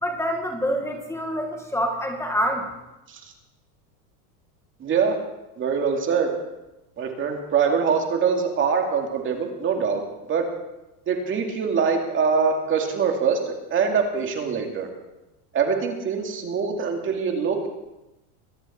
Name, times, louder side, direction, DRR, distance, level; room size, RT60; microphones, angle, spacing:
voice 1, 0.0-2.7, equal, 5° left, 3 dB, 1.5 m, -26 dB
voice 2, 4.8-5.2 5.6-6.3 7.0-10.0 10.3-10.5 11.1-14.9 15.5-17.7, right 6 dB, 25° right, 2 dB, 2.4 m, -23 dB
23.0 x 9.8 x 4.4 m, 0.96 s
supercardioid pair, 150°, 46 cm